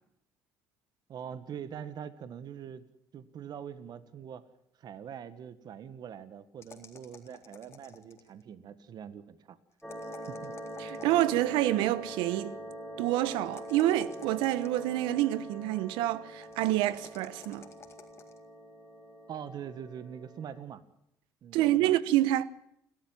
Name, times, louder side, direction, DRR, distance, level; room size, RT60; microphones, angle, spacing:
voice 1, 1.1-2.9 3.1-4.5 4.8-9.6 10.3-10.6 19.3-20.8 21.4-21.9, right 8 dB, 55° right, 1.7 m, -43 dB
sound 1, 6.6-8.4 9.8-11.7 13.3-15.1 16.4-18.4, left 5 dB, 30° left, 3.9 m, -53 dB
sound 2, 9.8-20.6, equal, ahead, 7.8 m, -44 dB
voice 2, 10.8-12.5 13.0-17.7 21.5-22.4, right 14 dB, 80° right, 1.1 m, -27 dB
29.5 x 13.0 x 9.1 m
supercardioid pair, 80°, 8 cm